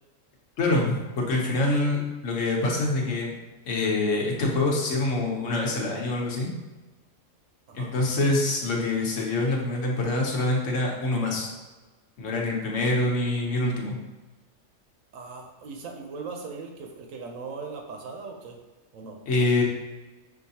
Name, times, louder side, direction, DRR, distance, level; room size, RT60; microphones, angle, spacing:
voice 1, 0.6-3.3 3.7-6.5 7.7-11.5 12.2-14.0 19.3-19.6, left 2 dB, 70° left, -1 dB, 1.2 m, -25 dB
voice 2, 15.1-18.6 18.9-19.2, right 4 dB, 80° right, 2 dB, 1.1 m, -39 dB
5.8 x 2.7 x 2.8 m, 1.2 s
omnidirectional pair, 1.3 m